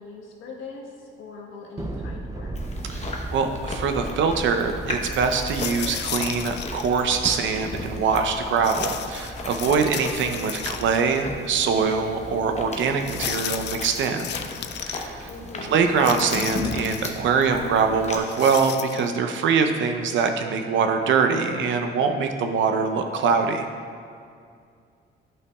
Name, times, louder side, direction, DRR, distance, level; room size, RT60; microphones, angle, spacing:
voice 1, 0.0-2.5 15.3-15.8, left 3 dB, 85° left, -1 dB, 1.3 m, -41 dB
Thunder, 1.8-12.4, right 2 dB, 15° right, 0.5 m, -38 dB
Chewing mastication, 2.6-18.2, left 2 dB, 35° left, 1.0 m, -36 dB
voice 2, 2.9-14.3 14.8-15.3 15.7-23.7, right 5 dB, 75° right, 6 dB, 0.7 m, -23 dB
sound 1, 5.4-7.3 8.6-11.2 11.5-11.6 13.0-15.1 16.0-17.2 18.1-19.2, left 10 dB, 60° left, 0.4 m, -34 dB
11.0 x 5.6 x 2.3 m, 2.3 s
cardioid pair, 90°, 20 cm